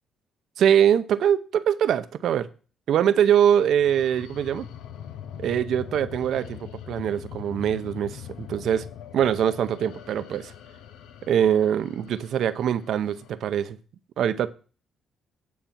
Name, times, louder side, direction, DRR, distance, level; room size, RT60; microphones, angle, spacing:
voice 1, 0.6-2.5 2.9-4.7 5.4-8.8 9.1-10.5 11.3-13.8 14.2-14.5, right 9 dB, 70° right, 0.7 m, -23 dB
sound 1, 3.6-13.3, left 9 dB, 90° left, 0.7 m, -42 dB
9.3 x 4.2 x 7.3 m
cardioid pair, 90°, 0 cm